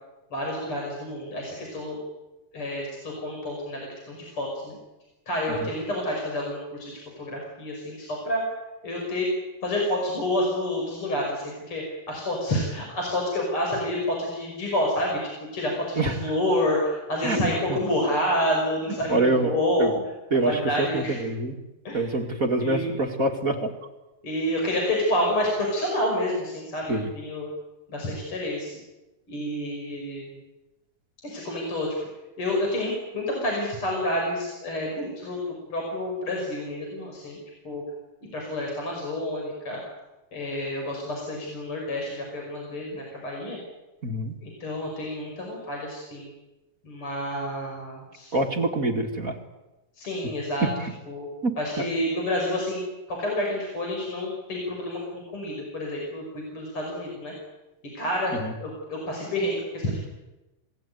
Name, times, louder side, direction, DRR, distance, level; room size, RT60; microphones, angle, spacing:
voice 1, 0.3-2.0 2.5-4.8 5.3-8.4 8.8-9.3 9.6-20.1 20.4-21.2 21.8-22.1 22.6-22.9 24.2-27.5 27.9-28.7 29.3-30.4 31.2-31.9 32.4-35.4 35.7-37.4 37.6-37.8 38.3-39.8 40.3-43.6 44.4-46.3 46.8-48.3 50.0-50.7 51.1-51.3 51.6-57.3 57.9-60.0, left 1 dB, 40° left, -1 dB, 6.3 m, -29 dB
voice 2, 19.1-19.5 19.8-19.9 20.3-20.6 20.9-21.6 21.9-23.7 26.9-27.1 44.0-44.3 48.3-49.3 51.4-51.5 58.4-58.5, right 2 dB, 30° right, 3 dB, 1.9 m, -25 dB
27.5 x 19.0 x 9.3 m, 1.1 s
omnidirectional pair, 3.6 m